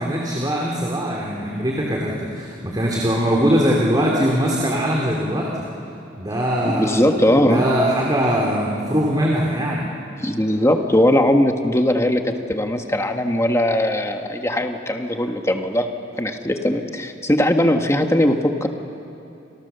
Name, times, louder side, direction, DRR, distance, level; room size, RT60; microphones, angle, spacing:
voice 1, 0.0-5.7 6.2-9.9, equal, 20° right, -2 dB, 2.9 m, -21 dB
voice 2, 6.6-7.6 10.2-15.9 16.1-18.7, left 1 dB, 15° left, 5 dB, 1.5 m, -19 dB
30.0 x 27.5 x 6.9 m, 2.8 s
head